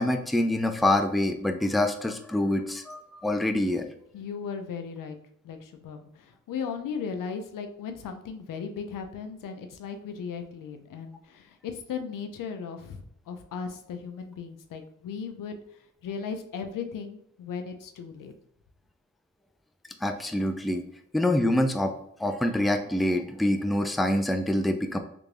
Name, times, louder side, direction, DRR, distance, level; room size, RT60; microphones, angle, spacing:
voice 1, 0.0-3.9 20.0-20.8 21.1-21.9 22.2-25.0, left 1 dB, ahead, 5 dB, 0.4 m, -25 dB
voice 2, 4.1-5.2 5.4-15.6 16.0-18.3, left 6 dB, 85° left, 6 dB, 0.5 m, -37 dB
3.4 x 2.5 x 3.2 m, 0.73 s
cardioid pair, 55°, 31 cm